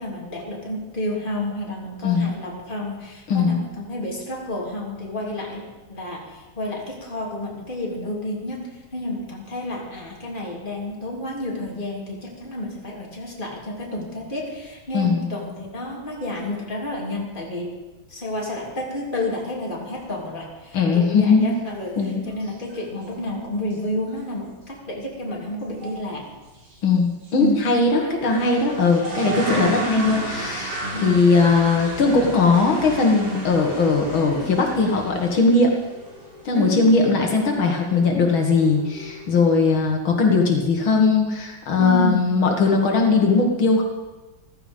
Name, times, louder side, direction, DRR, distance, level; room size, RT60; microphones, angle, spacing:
voice 1, 0.0-8.6 8.9-17.7 18.1-26.2 27.4-27.5 27.9-28.2 29.4-29.7 30.8-31.2 36.5-37.1 41.8-42.2, left 1 dB, 25° left, -3 dB, 3.3 m, -30 dB
voice 2, 3.3-3.6 14.9-15.3 20.7-21.5 22.0-22.2 26.8-35.7 36.5-43.8, left 4 dB, 80° left, 1 dB, 2.5 m, -19 dB
sound 1, 21.9-22.0 22.3-22.8 23.1-23.2 23.7-23.8 24.1-24.2 25.8-26.0 26.5-26.8 27.2-27.3 28.2-39.4, right 1 dB, 55° right, 4.7 m, -34 dB
14.5 x 14.5 x 5.4 m, 1.1 s
omnidirectional pair, 2.2 m